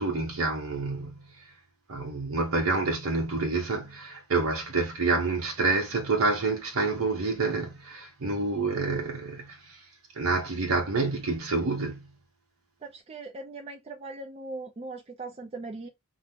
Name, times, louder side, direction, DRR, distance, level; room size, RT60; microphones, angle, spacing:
voice 1, 0.0-1.4 1.9-9.8 10.2-12.1, right 3 dB, 85° right, 0.7 m, -28 dB
voice 2, 12.8-15.9, right 3 dB, 30° right, 0.4 m, -39 dB
2.8 x 2.0 x 3.5 m
head